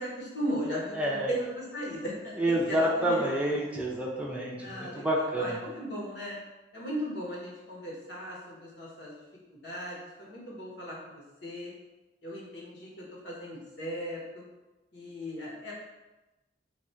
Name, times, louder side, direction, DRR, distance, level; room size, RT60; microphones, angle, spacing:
voice 1, 0.0-2.4 2.7-3.3 4.6-6.4 6.7-9.2 9.5-11.7 12.2-14.4 14.9-15.7, equal, 75° left, -5 dB, 1.2 m, -37 dB
voice 2, 0.9-1.3 2.4-5.6, right 1 dB, 5° right, -4 dB, 0.6 m, -28 dB
3.2 x 2.5 x 4.3 m, 1.1 s
head